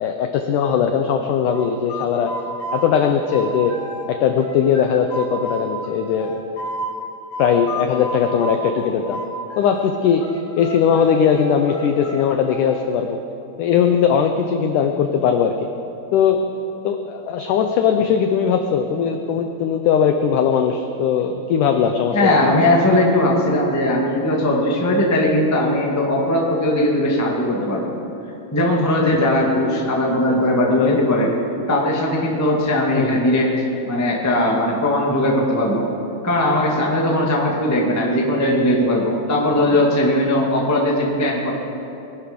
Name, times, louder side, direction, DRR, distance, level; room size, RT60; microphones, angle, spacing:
voice 1, 0.0-2.3 2.7-3.7 4.1-6.3 7.4-9.2 9.6-10.2 10.6-13.2 13.6-15.7 16.1-16.4 16.8-22.5 30.3-30.4 30.7-31.0 32.9-33.2, left 7 dB, 85° left, 5 dB, 1.8 m, -19 dB
sound 1, 1.5-4.1 4.4-6.9 7.3-9.9 10.2-12.9, equal, 70° left, 4.7 m, -31 dB
voice 2, 22.1-27.9 28.5-31.3 31.7-33.5 33.9-35.9 36.2-41.5, left 1 dB, 20° left, -2 dB, 0.4 m, -19 dB
21.5 x 11.5 x 5.2 m, 2.9 s
omnidirectional pair, 4.5 m